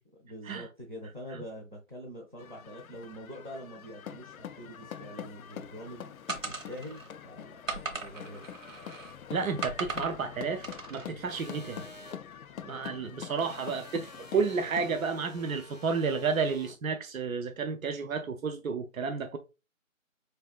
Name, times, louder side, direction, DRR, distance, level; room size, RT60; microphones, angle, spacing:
voice 1, 0.1-6.1 6.4-7.6 8.0-8.5, equal, 40° right, 0.5 m, -44 dB
sound 1, 2.4-15.0, left 9 dB, 85° left, 0.5 m, -45 dB
sound 2, 6.3-7.1 7.7-9.1 9.6-10.2 10.6-11.1, right 4 dB, 70° right, 1.0 m, -38 dB
voice 2, 9.3-11.9 12.6-19.4, right 5 dB, 85° right, 0.6 m, -31 dB
sound 3, 11.3-12.2 13.4-16.8, left 1 dB, 35° left, 0.6 m, -50 dB
4.0 x 3.4 x 2.4 m
figure-of-eight pair, 175°, 40 cm